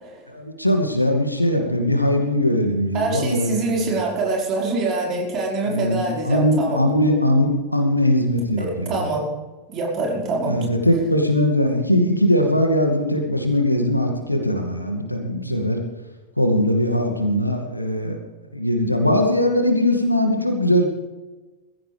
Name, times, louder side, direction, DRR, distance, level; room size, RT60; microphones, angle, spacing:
voice 1, 0.3-3.9 5.6-9.1 10.5-15.8 16.4-18.2 18.5-20.8, left 1 dB, 85° left, 4 dB, 2.3 m, -20 dB
voice 2, 2.9-6.8 8.6-9.3 9.7-10.6, right 3 dB, 35° right, -2 dB, 5.2 m, -25 dB
20.5 x 15.5 x 3.5 m, 1.2 s
figure-of-eight pair, 90°, 0 cm